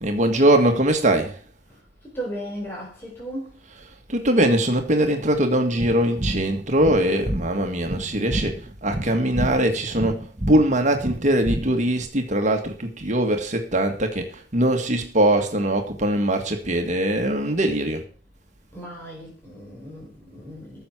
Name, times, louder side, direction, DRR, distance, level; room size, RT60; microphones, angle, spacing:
voice 1, 0.0-1.4 3.7-18.0, right 1 dB, 40° right, 1.8 m, -22 dB
voice 2, 2.1-3.6 18.7-20.9, right 1 dB, 15° left, 4.3 m, -35 dB
sound 1, 5.8-12.1, right 1 dB, 25° right, 1.4 m, -30 dB
14.0 x 7.1 x 6.1 m
head